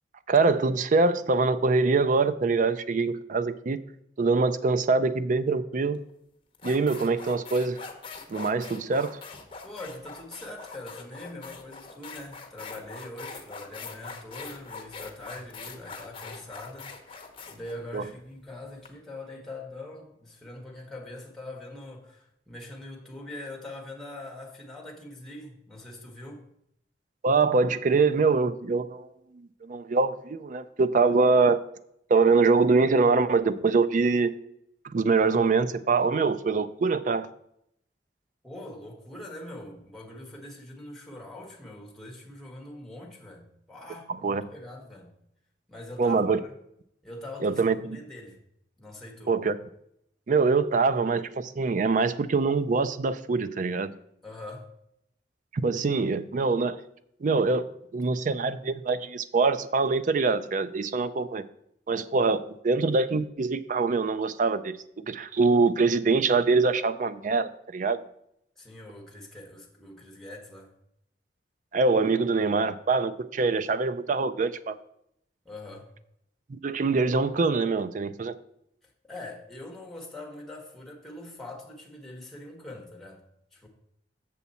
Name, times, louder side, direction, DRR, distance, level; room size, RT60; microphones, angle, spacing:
voice 1, 0.3-3.8 4.2-6.0 6.6-7.8 8.3-9.2 17.9-18.1 27.2-29.1 29.3-31.6 32.1-34.3 34.8-37.3 44.1-44.4 46.0-46.4 47.4-48.0 49.3-49.5 50.3-53.9 55.5-56.8 57.2-57.7 57.9-61.4 61.9-68.0 71.7-74.8 76.5-78.3, right 4 dB, 45° right, 0.4 m, -24 dB
sound 1, 5.9-6.1 6.5-18.9, left 4 dB, 30° left, 0.9 m, -43 dB
voice 2, 9.6-26.4 38.4-45.1 45.7-46.5 47.0-48.4 48.8-49.4 54.2-54.7 68.6-70.7 75.4-75.9 79.0-83.2 83.5-83.7, left 1 dB, ahead, 1.4 m, -43 dB
7.1 x 7.0 x 4.2 m
head